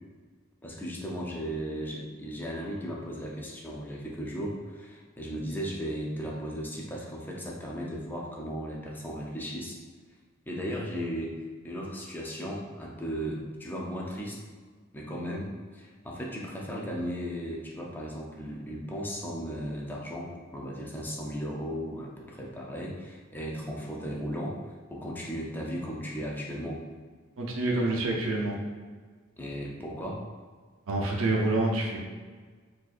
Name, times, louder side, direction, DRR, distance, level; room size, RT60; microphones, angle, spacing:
voice 1, 0.6-9.8 10.5-11.3 11.6-14.4 14.9-24.6 24.9-26.8 29.4-30.3, equal, 10° left, -3 dB, 0.5 m, -36 dB
voice 2, 27.4-28.5 30.9-32.0, right 2 dB, 90° right, -1 dB, 0.6 m, -27 dB
4.2 x 2.6 x 2.5 m, 1.5 s
head